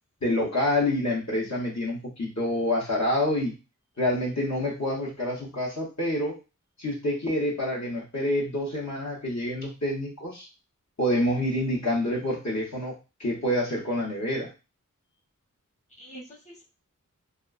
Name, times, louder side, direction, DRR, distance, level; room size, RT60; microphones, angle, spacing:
voice 1, 0.2-3.6 4.0-6.4 6.8-10.5 11.0-14.5, left 1 dB, 60° left, -4 dB, 0.9 m, -27 dB
voice 2, 16.0-16.6, right 1 dB, 20° left, -2 dB, 0.9 m, -47 dB
2.3 x 2.3 x 2.3 m, 0.28 s
wide cardioid pair, 50°, 32 cm